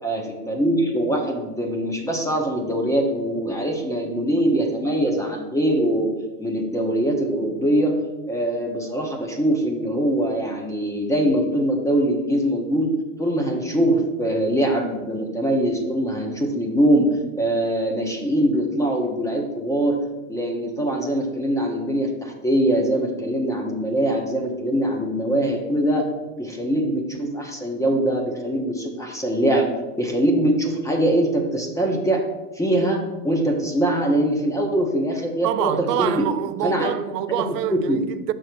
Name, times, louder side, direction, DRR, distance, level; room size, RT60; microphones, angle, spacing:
voice 1, 0.0-6.1 6.4-7.9 8.3-12.9 13.2-17.1 17.3-20.0 20.3-26.1 26.4-29.7 30.0-32.2 32.5-36.2 36.6-36.9 37.3-37.4 37.7-38.0, right 1 dB, 5° left, 1.0 m, -22 dB
voice 2, 35.4-38.3, right 12 dB, 85° right, 0.6 m, -26 dB
6.3 x 4.5 x 6.2 m
supercardioid pair, 130°, 46 cm